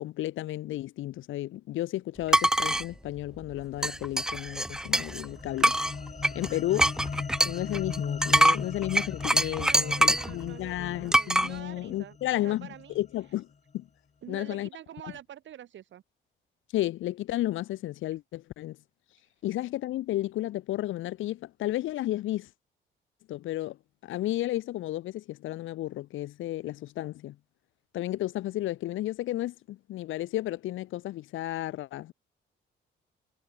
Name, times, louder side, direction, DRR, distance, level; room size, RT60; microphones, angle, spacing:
voice 1, 0.0-5.8 6.3-6.9 7.4-13.5 13.7-13.9 14.3-14.7 15.0-15.1 16.7-18.8 19.4-22.5 23.3-23.8 24.0-27.4 27.9-32.1, left 15 dB, 85° left, 1.2 m, -32 dB
sound 1, 2.3-2.8 3.8-5.2 5.6-10.3 11.1-11.5, right 1 dB, 5° right, 0.4 m, -24 dB
sound 2, 4.8-13.3, left 5 dB, 35° left, 3.2 m, -39 dB
voice 2, 9.3-12.9 14.2-16.0, right 11 dB, 70° right, 3.8 m, -46 dB
cardioid pair, 90°, 20 cm